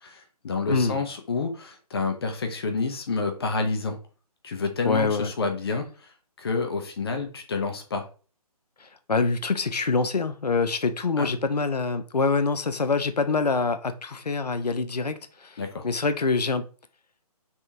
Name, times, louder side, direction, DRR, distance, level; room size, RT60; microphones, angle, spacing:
voice 1, 0.0-4.0 4.4-6.1 6.4-8.0 11.2-11.3 15.6-15.8, left 4 dB, 40° left, 0.6 m, -29 dB
voice 2, 0.7-1.0 4.9-5.3 9.1-15.6 15.8-16.6, left 4 dB, 80° left, 0.6 m, -25 dB
3.5 x 3.3 x 2.8 m
figure-of-eight pair, 140°, 20 cm